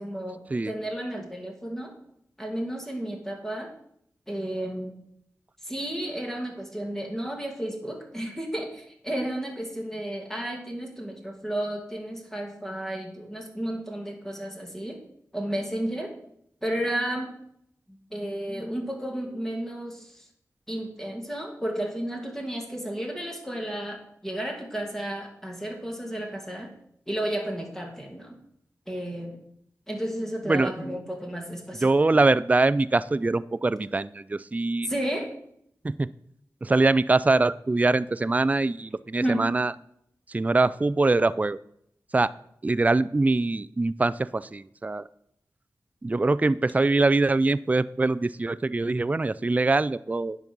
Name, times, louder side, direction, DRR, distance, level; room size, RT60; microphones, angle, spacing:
voice 1, 0.0-1.9 2.4-3.7 4.3-4.9 5.6-15.0 15.3-16.1 16.6-17.3 17.9-20.3 20.7-26.7 27.1-28.4 28.9-29.4 29.9-32.2 34.9-35.3 39.2-39.4, right 1 dB, 5° left, 1 dB, 2.3 m, -32 dB
voice 2, 31.7-34.9 35.8-36.1 36.6-39.7 40.3-41.6 42.1-42.3 42.6-45.1 46.0-50.4, right 3 dB, 25° right, 16 dB, 0.3 m, -23 dB
9.6 x 5.3 x 6.0 m, 0.72 s
wide cardioid pair, 60°, 7 cm